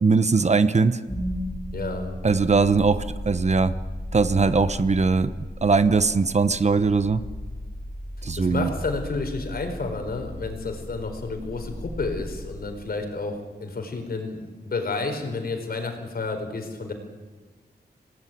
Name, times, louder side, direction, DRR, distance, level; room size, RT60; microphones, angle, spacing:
voice 1, 0.0-1.0 2.2-3.8 4.1-5.3 5.6-7.2 8.2-8.7, right 4 dB, 40° right, 12 dB, 1.0 m, -20 dB
sound 1, 1.1-13.2, left 1 dB, ahead, 5.6 m, -35 dB
voice 2, 1.7-2.2 8.3-16.9, left 3 dB, 60° left, 5 dB, 4.7 m, -31 dB
28.0 x 19.0 x 9.4 m, 1.4 s
wide cardioid pair, 135°, 18 cm